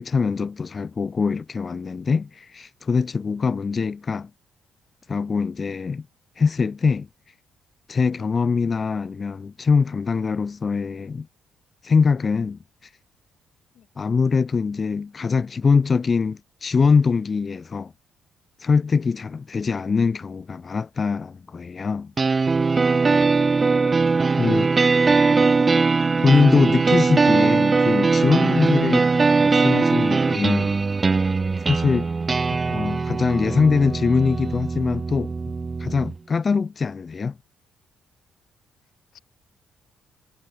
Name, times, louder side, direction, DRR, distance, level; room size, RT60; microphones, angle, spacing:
voice 1, 0.0-4.3 5.1-6.1 6.4-7.1 7.9-11.3 11.8-12.9 14.0-17.9 18.6-22.1 24.4-24.8 26.2-29.1 29.4-30.7 31.6-32.1 32.5-35.3 35.8-37.4, left 5 dB, 35° left, 1.3 m, -23 dB
voice 2, 8.1-8.3 13.7-13.9 32.0-32.1 39.1-39.2, left 11 dB, 75° left, 3.2 m, -57 dB
sound 1, 22.2-36.2, right 4 dB, 30° right, 0.5 m, -20 dB
cardioid pair, 90°, 0 cm